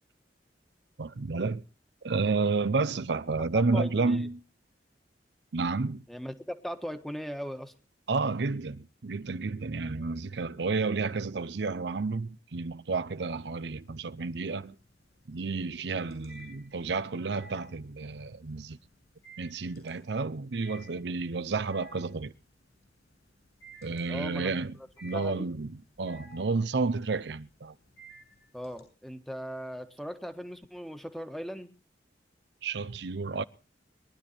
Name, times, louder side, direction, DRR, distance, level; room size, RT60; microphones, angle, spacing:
voice 1, 1.0-1.6 2.0-4.4 5.5-6.0 8.1-14.8 15.3-18.8 19.4-22.3 23.8-24.7 25.0-27.7 32.6-33.4, right 4 dB, 75° right, 0.6 m, -31 dB
voice 2, 3.5-4.2 6.1-7.7 24.1-24.5 25.1-25.5 28.5-31.7, equal, ahead, 1.5 m, -38 dB
sound 1, 13.6-14.0 14.3-28.8, right 1 dB, 65° left, 7.9 m, -53 dB
22.0 x 11.5 x 4.3 m
head